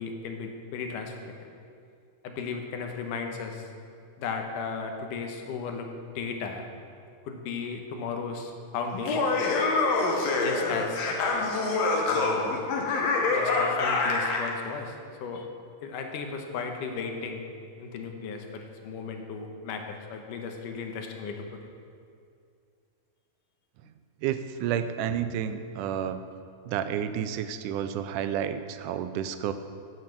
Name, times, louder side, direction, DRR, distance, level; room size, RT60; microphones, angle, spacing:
voice 1, 0.0-1.3 2.2-3.7 4.2-5.9 6.2-6.7 7.3-9.3 10.4-11.0 12.0-12.6 13.3-14.9 15.2-15.5 15.8-17.5 17.8-21.4, left 5 dB, 85° left, 4 dB, 2.6 m, -35 dB
Laughter, 8.9-14.5, left 3 dB, 60° left, 2.2 m, -26 dB
voice 2, 24.2-26.2 26.7-29.5, right 9 dB, 85° right, 10 dB, 2.1 m, -30 dB
9.5 x 8.3 x 7.6 m, 2.4 s
omnidirectional pair, 3.6 m